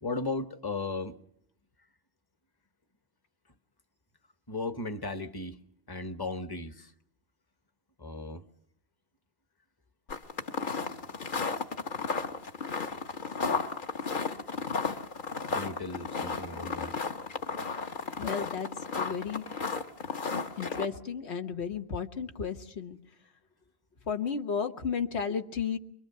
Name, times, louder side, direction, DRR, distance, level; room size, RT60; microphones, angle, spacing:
voice 1, 0.0-1.2 4.5-6.9 8.0-8.4 15.5-17.0, left 3 dB, 25° left, 10 dB, 0.9 m, -36 dB
sound 1, 10.1-20.9, left 4 dB, 50° left, 1.2 m, -33 dB
voice 2, 18.2-18.7 18.9-19.4 20.6-23.0 24.1-25.8, left 6 dB, 80° left, 7 dB, 1.4 m, -33 dB
24.5 x 22.5 x 6.7 m, 0.70 s
omnidirectional pair, 1.1 m